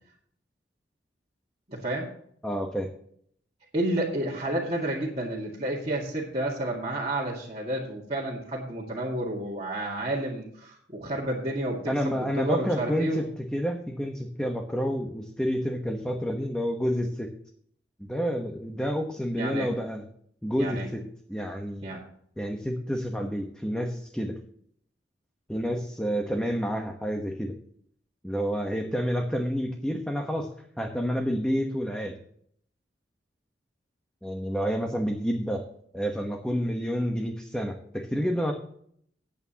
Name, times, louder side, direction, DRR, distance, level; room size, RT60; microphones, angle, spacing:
voice 1, 1.7-2.1 3.7-13.2 19.3-19.7 20.6-20.9 21.8-22.0, right 1 dB, 35° right, -5 dB, 1.9 m, -30 dB
voice 2, 2.4-2.9 11.9-13.3 13.5-17.3 18.0-20.0 20.4-21.0 21.3-21.9 22.4-24.4 25.5-27.5 28.2-30.5 30.8-32.2 34.2-35.6 35.9-38.5, equal, 5° left, 2 dB, 1.1 m, -29 dB
18.5 x 8.5 x 2.9 m, 0.64 s
head